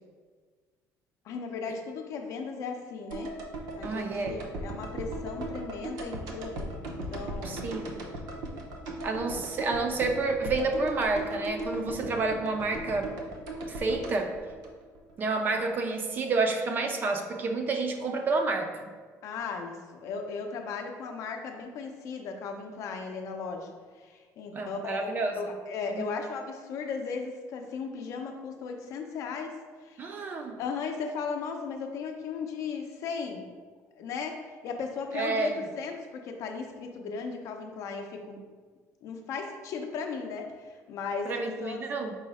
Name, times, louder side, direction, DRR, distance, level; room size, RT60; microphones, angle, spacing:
voice 1, 1.2-3.3 3.7-7.8 9.3-9.4 19.2-30.1 30.6-33.5 34.0-38.4 39.0-41.9, left 5 dB, 55° left, 4 dB, 0.5 m, -36 dB
sound 1, 3.1-15.3 15.5-15.6, right 1 dB, 80° right, 0.7 m, -38 dB
voice 2, 3.8-4.3 7.4-7.9 9.0-13.1 13.7-14.4 15.2-18.8 24.5-25.4 25.9-26.1 30.0-30.6 35.1-35.6 41.3-42.1, right 3 dB, 30° right, 5 dB, 0.3 m, -29 dB
5.4 x 2.0 x 4.8 m, 1.5 s
cardioid pair, 175°, 6 cm